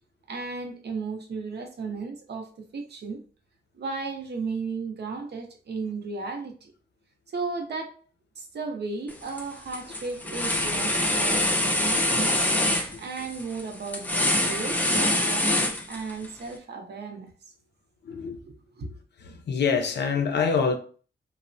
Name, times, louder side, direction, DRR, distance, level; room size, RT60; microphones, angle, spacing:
voice 1, 0.3-3.2 3.8-6.7 7.3-8.0 8.4-12.4 13.0-17.3 18.8-18.9, right 4 dB, 60° right, 0.6 m, -35 dB
sound 1, 9.1-9.4 9.7-16.3, left 1 dB, 10° left, 0.3 m, -25 dB
voice 2, 11.8-12.4 12.9-13.0 18.0-18.4 19.2-20.8, left 5 dB, 65° left, 0.5 m, -27 dB
3.1 x 2.0 x 2.5 m
wide cardioid pair, 135°, 20 cm